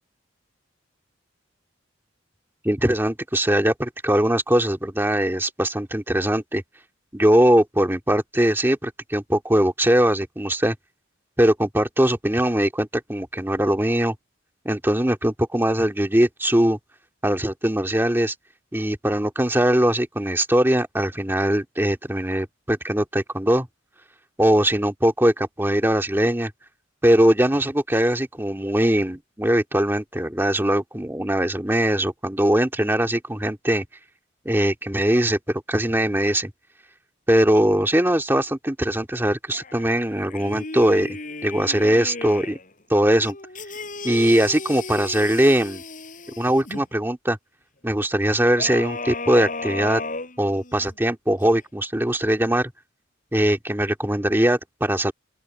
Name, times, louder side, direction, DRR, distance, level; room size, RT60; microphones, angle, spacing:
voice 1, 2.6-6.6 7.1-10.8 11.4-14.1 14.6-16.8 17.2-18.3 18.7-23.7 24.4-26.5 27.0-33.8 34.5-36.5 37.3-42.6 42.9-43.4 44.0-45.8 46.4-47.4 47.8-50.0 50.4-52.7 53.3-55.1, right 1 dB, 10° right, 2.2 m, -21 dB
sound 1, 39.5-42.7 43.2-46.8 48.6-50.9 51.4-51.5, left 3 dB, 45° left, 5.0 m, -34 dB
open air
head